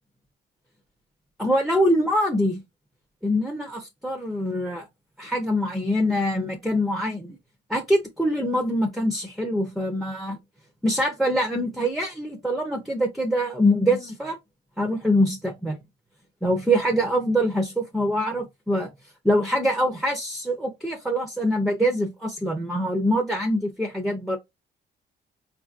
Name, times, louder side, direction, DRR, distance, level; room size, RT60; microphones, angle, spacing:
voice 1, 1.4-2.6 3.2-4.9 5.2-7.4 7.7-10.4 10.8-14.4 14.8-15.8 16.4-18.9 19.2-24.4, equal, ahead, 0.7 m, -24 dB
3.9 x 2.6 x 2.4 m
cardioid pair, 90°, 20 cm